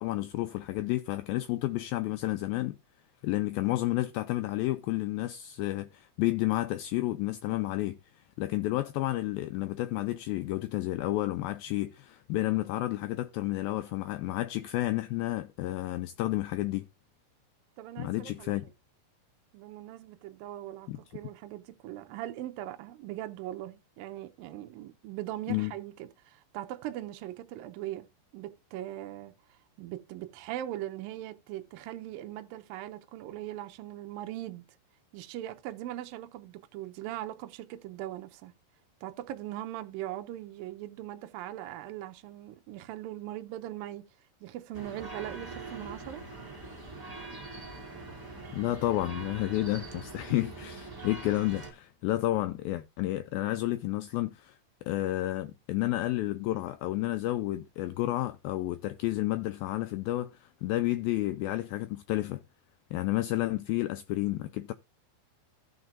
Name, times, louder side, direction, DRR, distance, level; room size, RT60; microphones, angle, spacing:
voice 1, 0.0-2.8 3.2-8.0 8.4-16.9 18.0-18.7 20.9-21.0 25.5-25.7 48.5-54.6 54.9-62.4 62.9-64.7, left 16 dB, 90° left, 2.1 m, -31 dB
voice 2, 17.8-18.5 19.5-28.1 28.3-29.3 29.8-34.7 35.1-38.5 39.0-44.1 44.4-46.3, right 13 dB, 80° right, 2.1 m, -40 dB
sound 1, 44.7-51.7, right 3 dB, 10° right, 1.1 m, -43 dB
15.5 x 5.9 x 2.5 m
omnidirectional pair, 4.8 m